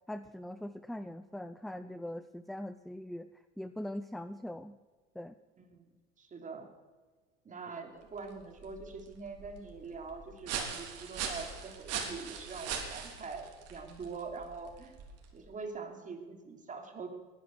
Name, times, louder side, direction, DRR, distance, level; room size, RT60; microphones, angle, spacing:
voice 1, 0.1-3.3 3.6-4.8 5.2-5.3, left 1 dB, ahead, 12 dB, 0.4 m, -41 dB
voice 2, 5.6-5.9 6.2-6.7 7.4-14.9 15.3-17.1, right 4 dB, 25° right, 4 dB, 3.0 m, -44 dB
sound 1, 8.0-15.5, right 6 dB, 50° right, 3.6 m, -41 dB
20.0 x 10.5 x 6.4 m, 1.4 s
supercardioid pair, 110°, 32 cm